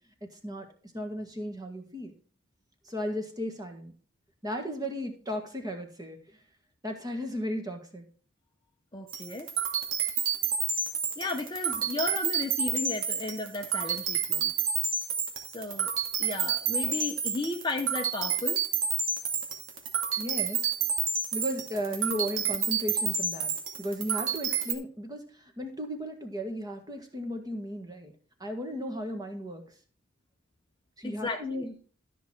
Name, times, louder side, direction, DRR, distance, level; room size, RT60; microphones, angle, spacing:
voice 1, 0.2-0.7 0.9-2.1 2.9-3.9 4.4-6.2 6.8-8.1 20.2-20.7 21.3-23.5 23.8-28.1 28.4-29.7 31.0-31.7, equal, 20° right, 4 dB, 1.7 m, -35 dB
voice 2, 8.9-9.5 11.2-14.5 15.5-15.9 16.2-18.6 31.0-31.7, left 2 dB, 20° left, 4 dB, 0.8 m, -34 dB
sound 1, 9.1-24.7, right 6 dB, 70° right, 2.2 m, -30 dB
13.0 x 6.2 x 4.4 m, 0.41 s
head